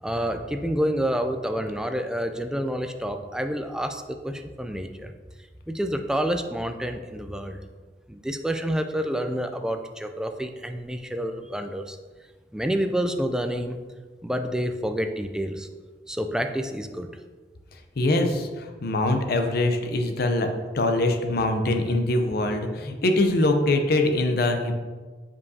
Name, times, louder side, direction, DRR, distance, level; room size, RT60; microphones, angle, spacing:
voice 1, 0.0-5.1 5.7-7.6 8.1-12.0 12.5-13.8 14.2-15.7 16.1-17.1, equal, 5° right, 6 dB, 0.3 m, -28 dB
voice 2, 18.0-20.5 20.7-24.7, left 2 dB, 60° left, 5 dB, 0.6 m, -23 dB
7.1 x 5.3 x 2.7 m, 1.4 s
head